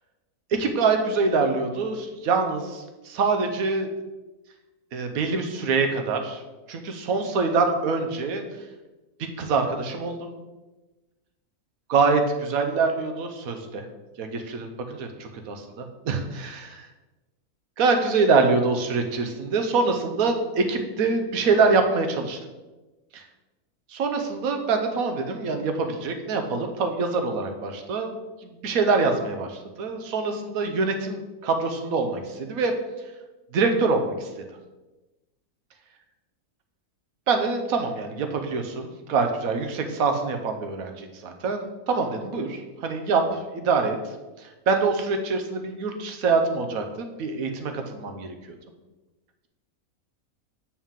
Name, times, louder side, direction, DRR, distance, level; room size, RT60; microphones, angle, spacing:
voice 1, 0.5-3.9 4.9-6.4 6.7-8.4 9.2-10.3 11.9-13.8 14.2-16.9 17.8-22.4 23.1-23.2 23.9-28.1 28.4-32.7 33.5-34.1 37.3-48.6, right 4 dB, 70° right, 5 dB, 1.2 m, -25 dB
7.2 x 4.5 x 3.7 m, 1.1 s
omnidirectional pair, 1.6 m